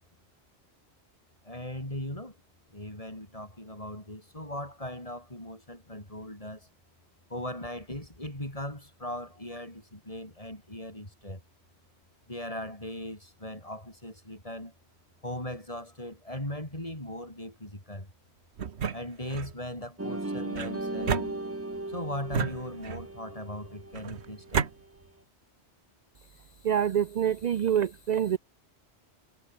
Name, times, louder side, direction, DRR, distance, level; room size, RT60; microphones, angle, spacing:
voice 1, 1.4-2.4 2.7-6.7 7.3-11.4 12.3-14.7 15.2-18.1 18.9-21.2 21.9-24.7, left 1 dB, 30° left, 6.1 m, -39 dB
sound 1, 18.6-19.5 20.5-21.8 22.3-23.2 23.9-24.7, right 7 dB, 70° right, 1.4 m, -32 dB
sound 2, 20.0-24.6, right 2 dB, 15° right, 1.0 m, -37 dB
voice 2, 26.6-28.4, right 9 dB, 55° right, 0.5 m, -26 dB
omnidirectional pair, 1.2 m